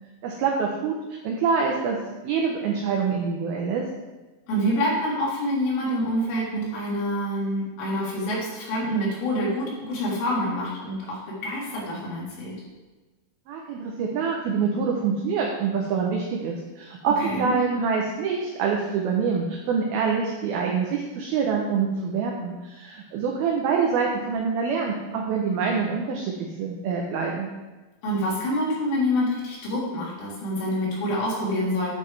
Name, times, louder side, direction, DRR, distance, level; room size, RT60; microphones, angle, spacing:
voice 1, 0.2-3.8 13.5-26.3 26.6-27.5, right 5 dB, 90° right, 0 dB, 2.1 m, -26 dB
voice 2, 4.5-12.6 17.2-17.6 28.0-31.9, equal, 75° left, -5 dB, 4.0 m, -26 dB
9.7 x 5.4 x 3.2 m, 1.2 s
omnidirectional pair, 5.3 m